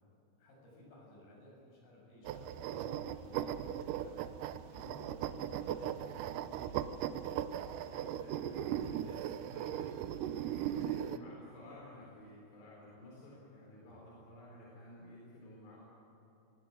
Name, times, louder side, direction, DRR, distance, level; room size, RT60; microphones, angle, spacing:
voice 1, 0.4-5.2 5.5-6.8 7.1-7.2 8.8-9.1 13.8-14.1, left 1 dB, 65° left, -2 dB, 9.1 m, -56 dB
sound 1, 2.3-11.2, right 10 dB, 85° right, 1.8 m, -38 dB
voice 2, 7.8-15.8, left 1 dB, 80° left, -4 dB, 6.5 m, -54 dB
22.5 x 18.0 x 9.1 m, 2.9 s
omnidirectional pair, 4.7 m